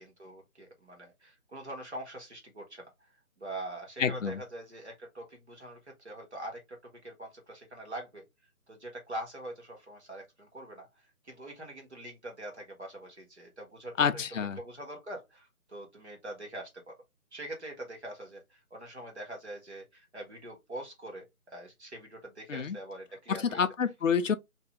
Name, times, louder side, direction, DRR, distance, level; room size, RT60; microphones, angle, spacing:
voice 1, 0.0-3.1 3.4-8.2 8.7-14.2 14.6-16.9 17.3-23.6, right 1 dB, 50° right, 1.4 m, -44 dB
voice 2, 4.0-4.4 14.0-14.6 22.5-22.8 23.3-24.3, left 6 dB, 60° left, 0.5 m, -28 dB
2.8 x 2.7 x 3.5 m
figure-of-eight pair, 180°, 44 cm